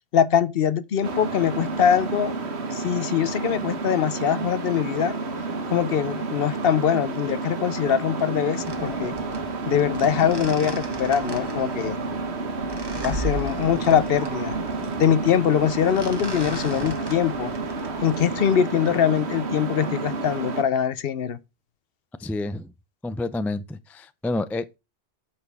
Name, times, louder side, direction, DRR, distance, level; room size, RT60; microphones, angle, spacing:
voice 1, 0.1-2.3 2.7-5.2 5.7-9.1 9.7-12.0 13.0-14.6 15.0-17.5 18.0-21.4, left 8 dB, 65° left, 0.9 m, -23 dB
sound 1, 1.0-20.6, right 3 dB, 80° right, 1.5 m, -30 dB
sound 2, 8.6-18.5, right 1 dB, 25° right, 1.4 m, -36 dB
voice 2, 22.2-22.7 23.0-24.8, left 2 dB, 5° left, 0.3 m, -29 dB
8.7 x 6.7 x 3.4 m
omnidirectional pair, 1.1 m